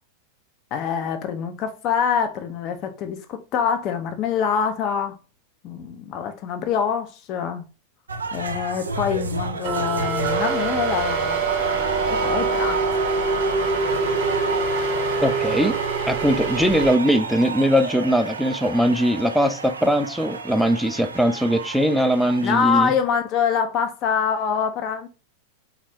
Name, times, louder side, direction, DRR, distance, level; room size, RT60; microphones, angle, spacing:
voice 1, 0.7-5.2 5.6-7.6 8.3-11.4 11.7-12.8 22.4-25.1, left 7 dB, 40° left, 0.7 m, -25 dB
sound 1, 8.1-22.5, right 3 dB, 75° right, 0.4 m, -31 dB
sound 2, 9.6-17.0, right 4 dB, 45° right, 1.0 m, -24 dB
voice 2, 15.2-15.8 16.1-22.9, equal, ahead, 0.4 m, -20 dB
4.1 x 2.4 x 3.5 m
figure-of-eight pair, 90°, 0 cm